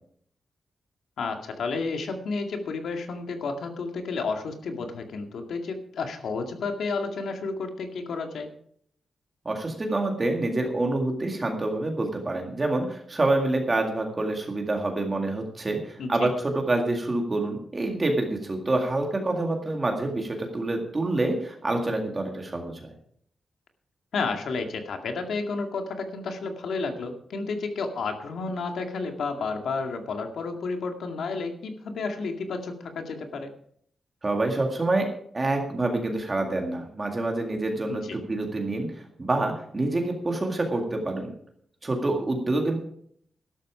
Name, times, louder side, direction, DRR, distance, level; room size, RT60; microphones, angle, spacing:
voice 1, 1.2-8.5 16.0-16.3 24.1-33.5 37.9-38.2, left 4 dB, 90° left, 5 dB, 2.1 m, -31 dB
voice 2, 9.5-22.9 34.2-35.1 35.3-41.3 41.8-42.8, right 2 dB, 25° right, 2 dB, 2.0 m, -27 dB
12.5 x 12.5 x 5.0 m, 0.64 s
wide cardioid pair, 155°, 0 cm